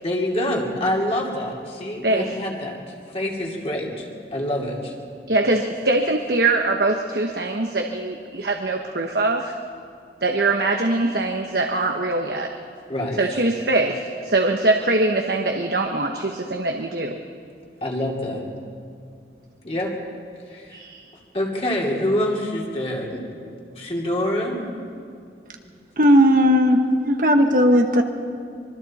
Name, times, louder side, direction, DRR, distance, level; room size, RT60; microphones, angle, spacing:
voice 1, 0.0-2.8 3.1-4.9 12.9-13.4 17.8-18.5 19.6-19.9 20.5-20.8 21.3-24.8 25.6-25.7, left 1 dB, 35° left, -2 dB, 2.7 m, -26 dB
voice 2, 2.0-2.4 5.3-9.5 10.2-12.5 13.2-17.2 20.7-21.0, right 2 dB, 65° right, 3 dB, 1.2 m, -22 dB
voice 3, 26.0-26.8 27.1-28.0, equal, 50° right, 4 dB, 1.4 m, -16 dB
25.5 x 24.0 x 4.3 m, 2.4 s
head